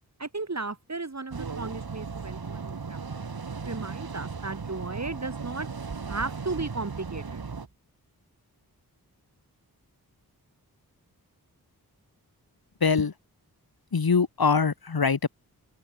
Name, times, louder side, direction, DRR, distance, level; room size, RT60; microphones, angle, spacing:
voice 1, 0.2-3.3 3.6-5.7 6.1-7.4, right 3 dB, 45° right, 5.5 m, -35 dB
sound 1, 1.3-7.7, right 5 dB, 70° right, 6.0 m, -36 dB
voice 2, 12.8-13.1 13.9-15.3, left 5 dB, 65° left, 4.7 m, -23 dB
open air
cardioid pair, 50°, 38 cm